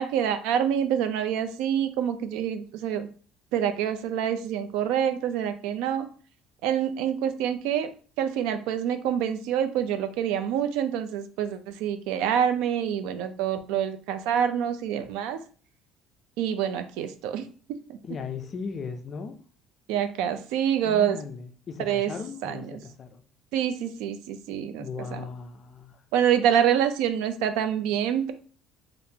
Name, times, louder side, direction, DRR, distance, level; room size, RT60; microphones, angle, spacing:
voice 1, 0.0-3.1 3.5-6.1 6.6-7.9 8.2-15.4 16.4-17.5 17.9-18.0 19.9-21.2 21.8-22.1 22.4-22.8 23.5-24.9 25.1-25.3 26.1-28.3, right 9 dB, 75° right, 10 dB, 0.4 m, -26 dB
voice 2, 18.0-19.4 20.8-23.2 24.8-26.0, left 5 dB, 25° left, 7 dB, 0.3 m, -37 dB
3.5 x 2.4 x 2.7 m, 0.42 s
cardioid pair, 180°, 0 cm